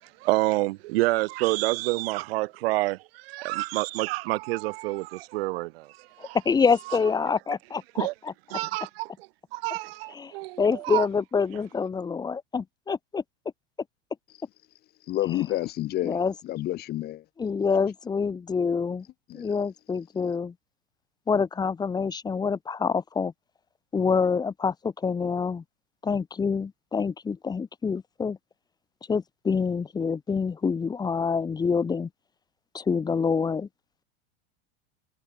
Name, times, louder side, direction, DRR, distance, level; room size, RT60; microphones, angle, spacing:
voice 1, 0.2-6.4 8.0-8.1 8.5-9.1 9.5-11.1, right 21 dB, 70° right, 1.4 m, -28 dB
voice 2, 6.2-8.3 10.1-13.2 15.3-15.4 16.0-16.3 17.4-19.0 19.3-20.5 21.3-23.3 23.9-25.6 26.0-28.4 29.1-32.1 32.7-33.7, left 5 dB, 10° left, 1.4 m, -26 dB
voice 3, 15.1-16.2 16.4-17.2 19.3-19.5, left 15 dB, 30° left, 1.4 m, -29 dB
supercardioid pair, 155°, 31 cm